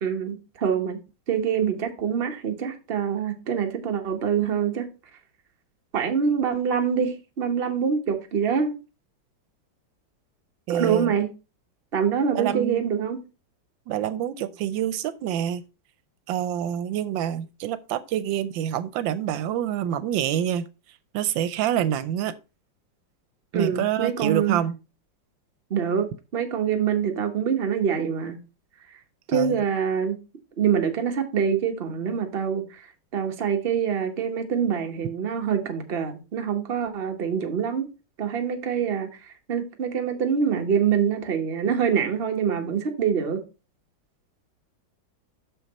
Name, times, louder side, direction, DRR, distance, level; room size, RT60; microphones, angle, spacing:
voice 1, 0.0-1.0 1.3-4.9 5.9-8.8 10.7-11.3 11.9-13.2 23.5-24.6 25.7-28.4 29.3-30.2 30.6-32.8 33.1-37.9 38.2-39.1 39.5-43.4, right 7 dB, 40° right, 1.1 m, -25 dB
voice 2, 10.7-11.1 12.3-12.9 13.9-15.6 16.3-20.7 21.1-22.3 23.5-24.8 29.3-29.6, right 10 dB, 85° right, 1.3 m, -27 dB
6.5 x 5.8 x 4.0 m
omnidirectional pair, 2.1 m